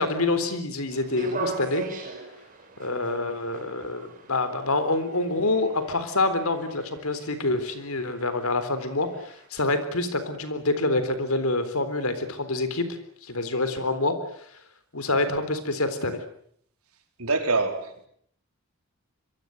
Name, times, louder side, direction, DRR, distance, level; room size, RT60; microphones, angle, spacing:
voice 1, 0.0-1.8 2.8-12.9 13.2-14.2 14.9-16.2, left 2 dB, 75° left, 11 dB, 3.8 m, -26 dB
sound 1, 0.9-9.5, right 3 dB, 40° right, 4.9 m, -40 dB
voice 2, 17.2-18.1, right 3 dB, 80° right, 6 dB, 4.4 m, -25 dB
26.0 x 22.5 x 7.9 m, 0.65 s
head